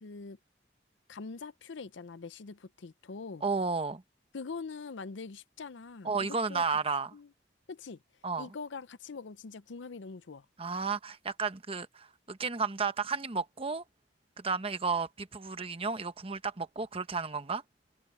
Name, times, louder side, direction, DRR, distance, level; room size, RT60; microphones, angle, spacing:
voice 1, 0.0-0.4 1.1-3.4 4.3-6.6 7.1-7.3 7.7-8.0 8.3-10.5, left 4 dB, 85° left, 0.6 m, -43 dB
voice 2, 3.4-4.0 6.0-7.1 8.2-8.5 10.6-13.8 14.4-17.6, right 4 dB, 30° right, 1.0 m, -32 dB
open air
head